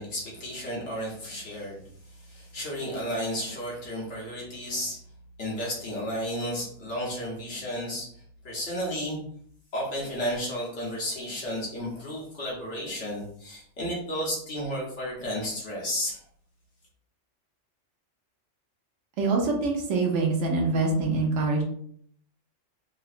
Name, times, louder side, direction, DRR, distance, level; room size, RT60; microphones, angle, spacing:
voice 1, 0.0-1.8 2.1-5.0 5.4-8.1 8.4-9.2 9.7-16.2, equal, 65° left, -4 dB, 1.4 m, -33 dB
voice 2, 19.2-21.6, right 3 dB, 70° right, 0 dB, 1.1 m, -25 dB
3.8 x 2.1 x 2.4 m, 0.62 s
omnidirectional pair, 1.3 m